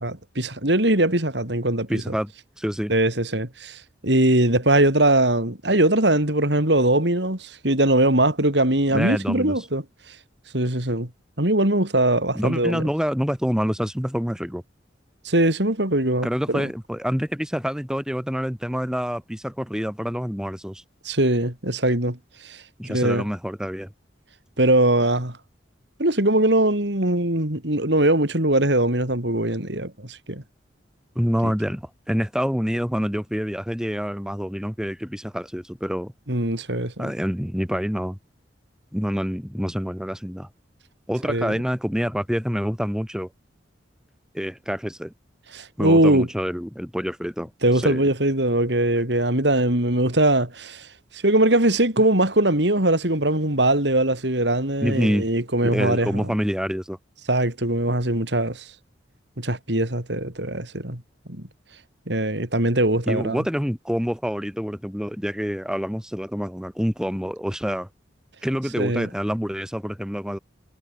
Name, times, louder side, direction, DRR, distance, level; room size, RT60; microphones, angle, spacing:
voice 1, 0.0-2.1 2.9-9.8 10.5-11.1 11.4-12.8 15.2-16.7 21.0-22.2 22.4-23.2 24.6-25.4 26.0-30.4 31.4-31.5 36.3-37.1 41.3-41.5 45.5-46.3 47.6-50.9 51.1-56.3 57.3-58.7 59.4-61.0 61.3-61.5 62.1-63.4 68.8-69.1, right 1 dB, 65° right, 5.1 m, -21 dB
voice 2, 1.9-2.3 2.6-2.9 8.9-9.7 12.3-14.6 16.2-20.8 22.8-23.9 31.1-36.1 37.0-38.2 38.9-40.5 41.1-43.3 44.3-45.1 45.8-47.5 47.8-48.0 54.8-55.2 55.6-57.0 63.1-67.9 68.4-70.4, equal, 5° right, 6.1 m, -27 dB
head